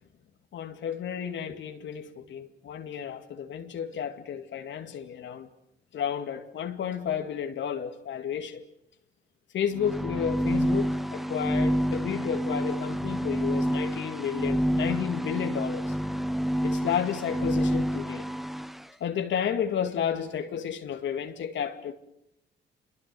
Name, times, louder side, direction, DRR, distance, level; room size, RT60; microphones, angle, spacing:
voice 1, 0.5-5.5 5.9-8.6 9.5-15.9 16.6-18.3 19.0-21.9, left 8 dB, 70° left, 7 dB, 2.2 m, -32 dB
sound 1, 9.7-18.8, equal, ahead, 0.9 m, -28 dB
27.0 x 22.5 x 7.7 m, 0.78 s
cardioid pair, 90°, 20 cm